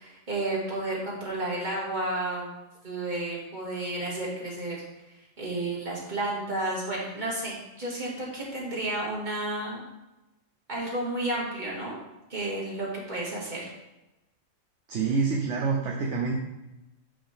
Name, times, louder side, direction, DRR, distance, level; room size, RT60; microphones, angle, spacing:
voice 1, 0.0-2.5 2.8-4.8 5.4-9.9 10.7-11.9 12.3-13.7, right 2 dB, 35° right, -5 dB, 2.4 m, -32 dB
voice 2, 14.9-16.3, right 4 dB, 65° right, 0 dB, 1.1 m, -27 dB
8.8 x 5.3 x 3.6 m, 0.99 s
omnidirectional pair, 1.4 m